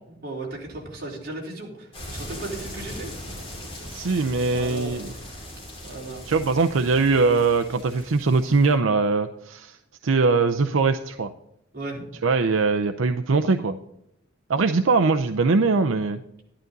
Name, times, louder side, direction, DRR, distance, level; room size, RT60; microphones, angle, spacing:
voice 1, 0.2-3.1 4.5-5.5 5.8-6.2 11.7-12.0, right 2 dB, 50° right, -3 dB, 4.0 m, -36 dB
sound 1, 1.9-8.7, left 1 dB, 30° left, 5.2 m, -39 dB
voice 2, 3.9-5.1 6.3-9.8 10.0-11.3 12.2-13.8 14.5-16.2, right 4 dB, 85° right, 7 dB, 0.6 m, -21 dB
12.5 x 11.5 x 4.0 m, 0.81 s
head